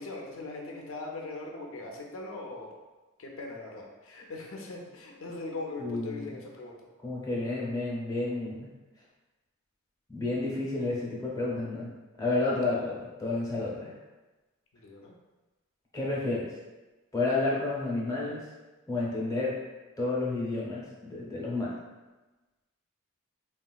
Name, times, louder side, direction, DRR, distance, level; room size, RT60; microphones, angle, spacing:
voice 1, 0.0-2.7 3.2-6.8 12.6-12.9 14.7-15.1, left 2 dB, 70° left, 0 dB, 0.5 m, -40 dB
voice 2, 5.8-6.4 7.0-8.7 10.1-11.9 12.2-13.9 15.9-16.5 17.1-18.4 18.9-19.5 20.0-21.7, left 2 dB, 15° left, -6 dB, 0.7 m, -30 dB
3.7 x 2.3 x 2.3 m, 1.2 s
head